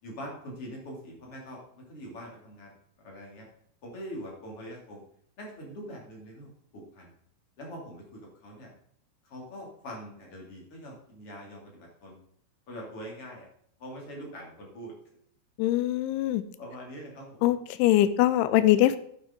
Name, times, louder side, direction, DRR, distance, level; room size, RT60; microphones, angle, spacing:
voice 1, 0.0-3.5 3.8-5.0 5.4-7.1 7.6-8.7 9.2-12.2 12.7-13.5 13.8-14.9 16.6-17.5, equal, 35° left, -2 dB, 3.2 m, -43 dB
voice 2, 15.6-16.4 17.4-19.0, left 14 dB, 85° left, 14 dB, 3.0 m, -22 dB
9.7 x 9.2 x 3.9 m, 0.66 s
omnidirectional pair, 5.5 m